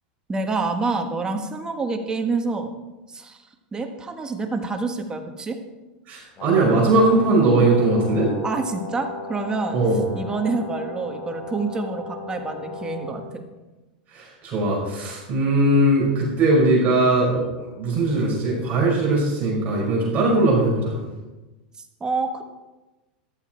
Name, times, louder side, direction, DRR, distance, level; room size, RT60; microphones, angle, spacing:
voice 1, 0.3-2.7 3.1-3.4 3.7-5.6 8.4-9.8 10.1-13.4 22.0-22.4, right 3 dB, 15° right, 5 dB, 1.5 m, -27 dB
voice 2, 6.1-8.3 9.7-10.0 14.1-17.4 17.8-21.0, right 2 dB, 35° right, -4 dB, 5.4 m, -20 dB
Brass instrument, 6.3-13.3, left 3 dB, 30° left, 3.4 m, -36 dB
14.0 x 12.0 x 4.5 m, 1.1 s
supercardioid pair, 130°, 5 cm